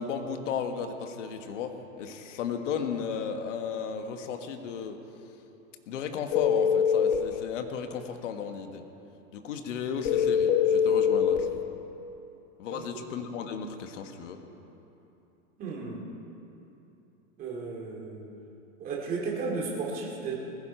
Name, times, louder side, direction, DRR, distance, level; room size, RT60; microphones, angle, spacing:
voice 1, 0.0-5.0 5.9-8.8 9.3-11.6 12.6-14.4, left 6 dB, 60° left, 6 dB, 1.5 m, -34 dB
sound 1, 6.3-7.2 10.1-11.4, left 7 dB, 40° left, 1.2 m, -23 dB
voice 2, 15.6-16.0 17.4-18.3 18.8-20.3, right 4 dB, 20° right, -2 dB, 2.4 m, -34 dB
20.0 x 15.5 x 4.4 m, 3.0 s
supercardioid pair, 170°, 42 cm